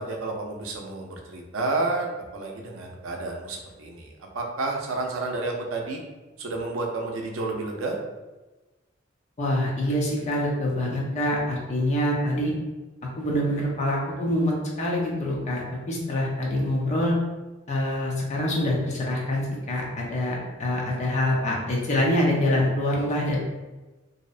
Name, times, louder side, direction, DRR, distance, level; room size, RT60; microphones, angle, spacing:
voice 1, 0.0-6.0 6.4-7.9, right 3 dB, 90° right, 1 dB, 0.5 m, -30 dB
voice 2, 9.4-12.5 13.2-17.2 17.7-23.4, left 1 dB, 35° left, -3 dB, 0.5 m, -25 dB
2.7 x 2.1 x 2.4 m, 1.2 s
head